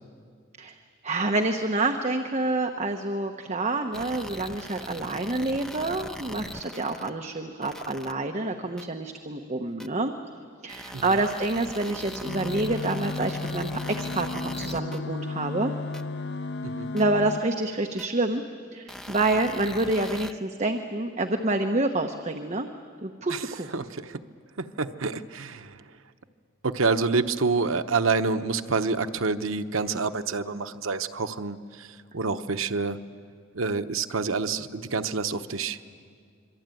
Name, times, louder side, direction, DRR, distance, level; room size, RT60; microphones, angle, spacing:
voice 1, 1.0-10.1 10.6-15.7 16.9-18.4 18.7-22.7 23.0-23.7, right 2 dB, 35° right, 4 dB, 1.1 m, -27 dB
sound 1, 3.9-7.1 7.6-8.1 8.8-8.9 9.8-9.9 10.7-15.0 15.9-16.0 17.0-17.1 18.0-18.1 18.9-20.3, equal, ahead, 0.6 m, -40 dB
sound 2, 12.2-17.4, left 3 dB, 55° left, 0.6 m, -33 dB
voice 2, 23.7-24.2 24.6-25.8 26.6-33.0 33.5-35.8, right 4 dB, 85° right, 9 dB, 0.9 m, -28 dB
26.0 x 23.5 x 9.2 m, 2.1 s
head